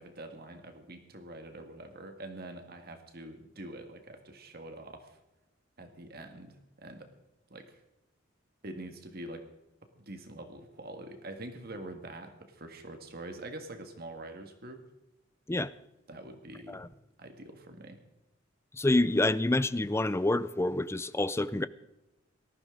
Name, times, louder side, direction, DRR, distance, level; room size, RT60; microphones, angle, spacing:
voice 1, 0.0-5.2 5.8-7.1 7.5-7.8 8.6-9.5 10.0-14.8 16.1-16.8 17.2-18.0, right 1 dB, 50° right, 1.8 m, -45 dB
voice 2, 18.8-21.7, left 2 dB, 15° left, 0.4 m, -27 dB
18.5 x 14.0 x 3.9 m
head